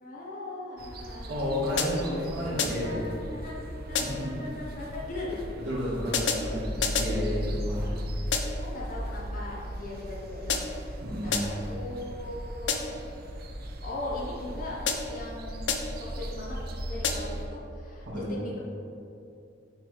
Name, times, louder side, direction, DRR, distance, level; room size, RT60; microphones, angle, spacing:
voice 1, 0.0-1.3 2.1-2.2 2.8-3.1 3.4-5.4 8.6-10.9 11.2-13.0 13.8-14.8 15.1-16.6 16.9-18.6, left 2 dB, 45° left, -5 dB, 0.9 m, -39 dB
sound 1, 0.8-17.5, equal, 55° right, 0.6 m, -37 dB
voice 2, 1.3-3.0 4.0-4.4 5.6-8.0 11.0-11.4 18.0-18.3, equal, 70° right, -10 dB, 1.5 m, -32 dB
sound 2, 1.8-2.2 2.6-3.0 3.9-4.4 6.1-7.2 8.3-8.7 10.5-10.9 11.3-11.7 12.7-13.1 14.9-15.3 15.7-16.1 17.0-17.5, left 5 dB, 70° left, 0.5 m, -31 dB
6.7 x 3.3 x 4.6 m, 2.7 s
head